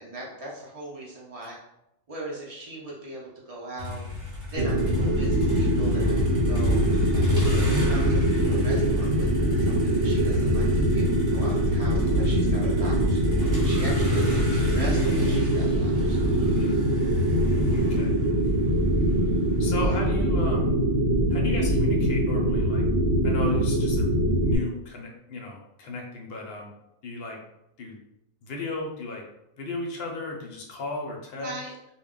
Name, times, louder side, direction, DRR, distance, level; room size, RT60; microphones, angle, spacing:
voice 1, 0.0-1.6 2.1-4.0 4.5-6.9 7.4-11.0 11.3-16.5 19.8-19.9 31.3-31.7, right 1 dB, 60° right, -4 dB, 0.3 m, -40 dB
Motor vehicle (road), 3.8-19.9, left 3 dB, 30° right, 0.9 m, -31 dB
sound 1, 4.6-24.6, right 1 dB, 80° right, 1.0 m, -23 dB
voice 2, 17.7-18.1 19.6-20.8 21.3-22.8 23.2-26.7 27.0-27.4 27.8-28.0 28.4-29.2 29.6-31.5, left 3 dB, 60° left, 0 dB, 0.7 m, -35 dB
2.2 x 2.1 x 3.6 m, 0.87 s
omnidirectional pair, 1.4 m